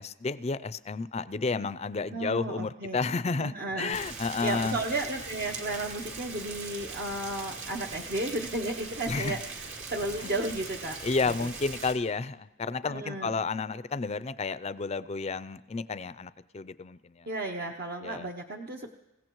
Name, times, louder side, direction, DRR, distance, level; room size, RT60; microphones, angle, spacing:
voice 1, 0.0-4.8 9.1-9.3 10.2-10.3 11.0-17.3 18.0-18.3, left 4 dB, 30° left, 15 dB, 0.4 m, -31 dB
voice 2, 2.1-3.0 3.3-4.0 4.4-11.0 11.2-11.5 12.8-13.4 17.3-18.9, right 2 dB, 50° right, 2 dB, 0.8 m, -34 dB
Rain, 3.9-11.9, right 4 dB, 65° right, 2.6 m, -41 dB
27.0 x 16.0 x 3.1 m, 0.99 s
head